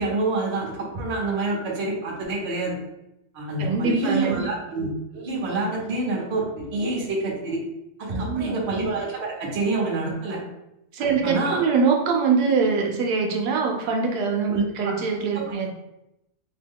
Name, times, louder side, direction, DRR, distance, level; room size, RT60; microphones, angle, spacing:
voice 1, 0.0-2.8 3.3-4.9 5.1-7.6 8.0-10.4 11.0-11.6 14.5-14.9 15.3-15.4, right 2 dB, 50° right, -2 dB, 1.0 m, -27 dB
voice 2, 3.6-4.5 8.1-8.6 10.9-15.7, right 5 dB, 85° right, 1 dB, 1.1 m, -23 dB
3.4 x 2.2 x 3.5 m, 0.88 s
omnidirectional pair, 1.7 m